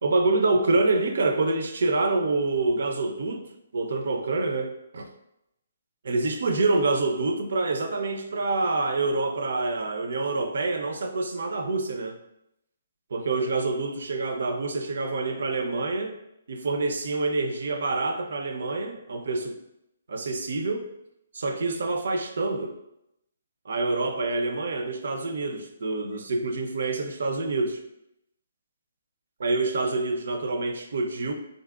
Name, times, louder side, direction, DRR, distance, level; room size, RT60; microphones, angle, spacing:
voice 1, 0.0-3.5 3.7-5.1 6.0-12.2 13.1-16.1 16.5-19.6 20.1-20.9 21.3-22.8 23.7-27.8 29.4-31.3, right 3 dB, 55° right, 6 dB, 0.4 m, -26 dB
3.3 x 2.6 x 2.3 m, 0.82 s
figure-of-eight pair, 135°, 0 cm